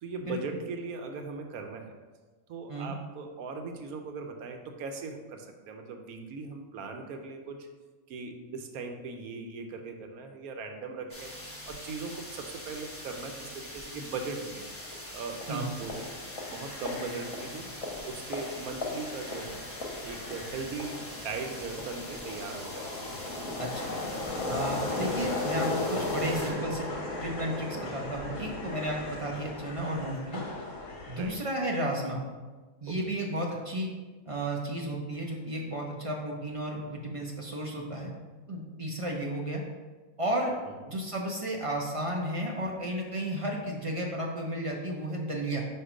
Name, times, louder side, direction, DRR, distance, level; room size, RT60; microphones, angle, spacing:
voice 1, 0.0-1.9 2.5-7.7 8.1-11.3 11.7-14.6 15.1-16.1 16.5-17.7 18.0-19.6 20.0-22.8 29.3-29.5 31.1-31.4 32.9-33.2 40.7-41.0, right 4 dB, 90° right, 4 dB, 1.2 m, -39 dB
sound 1, 11.1-26.5, left 1 dB, 10° left, 0.8 m, -44 dB
sound 2, 14.6-31.3, left 2 dB, 65° left, 1.5 m, -36 dB
voice 2, 23.6-24.0 24.5-26.9 27.2-30.4 31.1-32.2 32.8-33.9 34.3-38.1 38.5-39.6 40.2-40.6 40.9-45.6, right 1 dB, 40° right, -1 dB, 0.4 m, -33 dB
4.5 x 4.4 x 5.0 m, 1.3 s
omnidirectional pair, 1.5 m